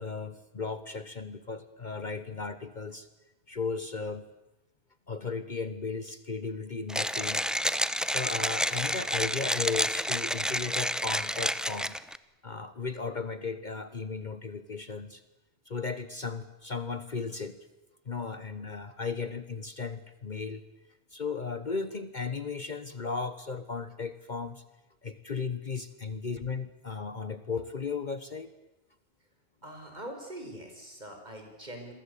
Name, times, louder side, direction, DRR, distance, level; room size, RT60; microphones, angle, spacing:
voice 1, 0.0-3.1 3.5-4.3 5.1-7.5 8.1-11.9 12.4-15.2 15.7-17.6 18.1-20.6 21.1-24.6 25.0-28.5, left 4 dB, 45° left, 12 dB, 1.2 m, -35 dB
Mechanisms, 6.9-12.2, equal, ahead, 0.7 m, -29 dB
voice 2, 29.6-31.9, right 1 dB, 40° right, 4 dB, 5.8 m, -43 dB
28.0 x 22.5 x 8.5 m, 0.98 s
omnidirectional pair, 1.1 m